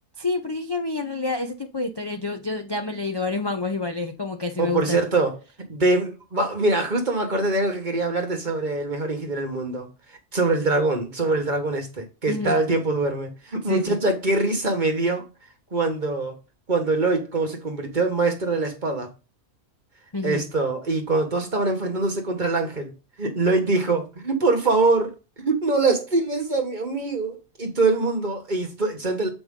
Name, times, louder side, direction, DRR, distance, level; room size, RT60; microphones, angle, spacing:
voice 1, 0.2-5.1 12.3-12.6 13.7-14.0 20.1-20.5, left 3 dB, 30° left, 0.4 m, -28 dB
voice 2, 4.6-5.4 5.7-9.9 10.3-15.2 15.7-16.4 16.7-19.1 20.2-22.9 23.2-29.3, right 3 dB, 35° right, 1.5 m, -23 dB
7.8 x 5.1 x 3.7 m
omnidirectional pair, 1.5 m